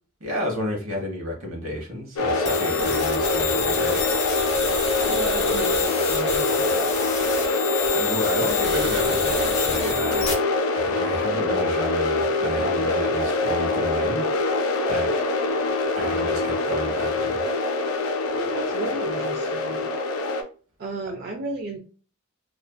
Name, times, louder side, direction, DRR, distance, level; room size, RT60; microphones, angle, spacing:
voice 1, 0.2-4.0 7.9-10.3 10.7-14.2 14.9-15.1 16.0-17.4, equal, 70° right, 2 dB, 0.9 m, -31 dB
sound 1, 2.2-20.4, left 2 dB, 80° left, 0.4 m, -24 dB
sound 2, 2.5-10.3, left 6 dB, 35° left, 0.6 m, -29 dB
voice 2, 5.1-7.0 18.3-19.9 20.8-21.8, right 2 dB, 50° right, -1 dB, 0.4 m, -34 dB
2.4 x 2.4 x 2.2 m, 0.38 s
head